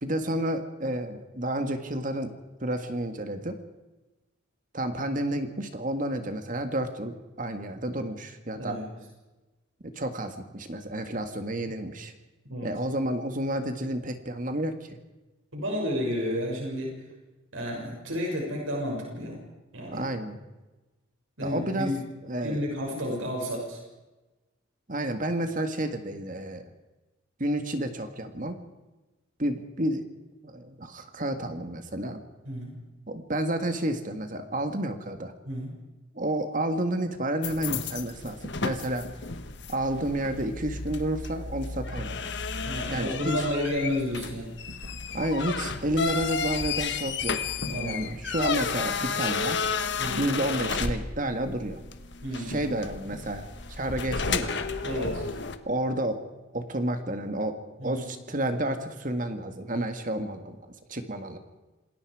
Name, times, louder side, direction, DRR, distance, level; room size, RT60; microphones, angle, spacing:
voice 1, 0.0-2.3 2.6-3.6 4.7-8.8 9.8-12.1 12.6-15.0 19.9-20.4 21.4-21.9 22.2-22.6 22.9-23.1 24.9-26.6 27.4-28.6 29.4-30.1 30.4-32.2 33.1-35.3 36.1-39.1 39.7-42.3 42.9-43.2 45.1-49.6 50.2-51.8 52.3-54.5 55.7-57.6 57.8-60.6 60.9-61.4, right 1 dB, 40° right, 7 dB, 1.8 m, -30 dB
voice 2, 8.5-8.9 11.6-11.7 12.5-12.7 15.5-17.0 17.5-19.4 19.7-20.0 21.4-22.0 22.4-23.8 32.4-32.7 35.4-35.7 42.7-44.5 47.7-48.2 50.0-50.3 52.2-52.6 54.8-55.2 57.8-58.0 59.7-59.9, equal, 75° right, -1 dB, 6.5 m, -31 dB
sound 1, 37.4-55.6, left 5 dB, 55° left, 1.4 m, -32 dB
27.0 x 20.0 x 4.9 m, 1.1 s
head